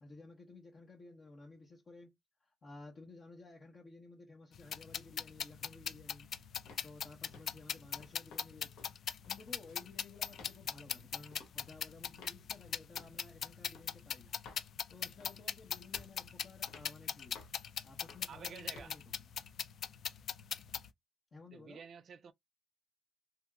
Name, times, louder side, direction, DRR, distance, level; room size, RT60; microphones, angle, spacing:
voice 1, 0.0-2.1 2.4-6.3 6.8-8.9 9.3-14.4 14.9-17.4 17.8-19.3 21.3-21.9, left 3 dB, 45° left, 0.8 m, -55 dB
sound 1, 4.5-20.9, left 8 dB, 65° left, 0.3 m, -41 dB
sound 2, 6.7-6.9 7.3-7.6 8.0-8.5 8.8-8.9 9.2-9.9 10.3-10.6 11.3-11.5 12.2-12.4 13.0-13.2 13.7-13.9 14.4-14.7 15.2-15.5 15.9-16.2 16.7-16.9 17.3-17.6 18.1-18.3 18.7-18.9, left 4 dB, 90° left, 0.8 m, -55 dB
voice 2, 18.3-19.0 21.5-22.3, right 6 dB, 55° right, 0.4 m, -50 dB
2.8 x 2.8 x 2.3 m
cardioid pair, 90°, 0 cm